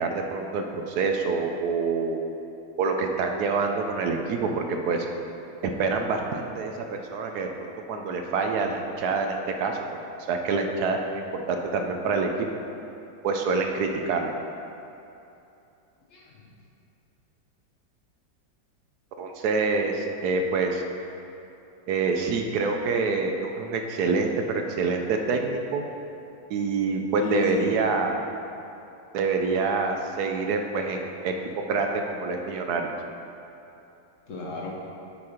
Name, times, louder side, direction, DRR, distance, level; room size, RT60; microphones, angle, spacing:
voice 1, 0.0-2.3 2.8-5.1 5.8-9.8 10.3-12.5 13.2-14.3 19.2-20.8 21.9-25.8 26.5-28.2 29.1-32.9, right 4 dB, 70° right, 3 dB, 1.0 m, -26 dB
voice 2, 16.1-16.5 27.2-27.7 30.9-31.0 34.3-34.7, left 4 dB, 60° left, -2 dB, 0.9 m, -32 dB
8.4 x 4.3 x 4.9 m, 2.9 s
omnidirectional pair, 1.9 m